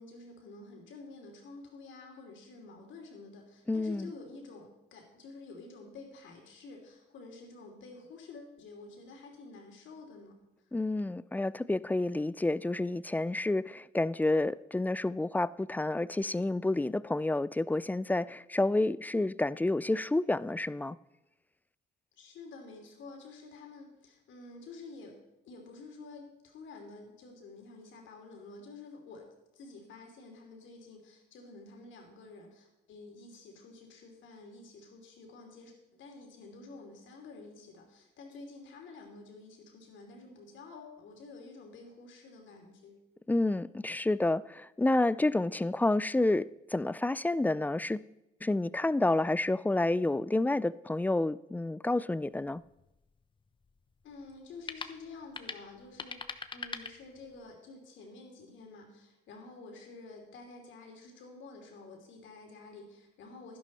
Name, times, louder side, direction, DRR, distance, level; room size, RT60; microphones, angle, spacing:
voice 1, 0.0-10.7 22.2-25.2 25.4-29.3 29.5-43.0 54.0-56.2 56.5-63.6, left 3 dB, 70° left, 3.0 m, -50 dB
voice 2, 3.7-4.1 10.7-21.0 43.3-48.0 48.4-52.6, left 2 dB, 10° left, 0.3 m, -29 dB
sound 1, 52.2-57.6, left 4 dB, 25° left, 0.9 m, -45 dB
11.5 x 11.0 x 4.1 m
supercardioid pair, 70°, 20 cm